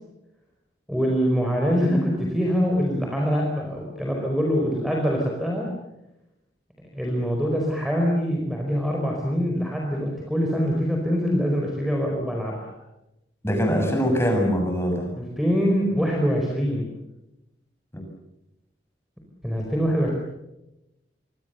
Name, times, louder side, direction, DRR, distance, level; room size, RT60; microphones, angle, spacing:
voice 1, 0.9-5.7 6.9-12.8 15.2-16.9 19.4-20.1, equal, ahead, 0 dB, 4.6 m, -24 dB
voice 2, 13.4-15.1 17.9-18.0, equal, 15° left, 3 dB, 7.1 m, -23 dB
27.5 x 23.5 x 6.9 m, 0.90 s
head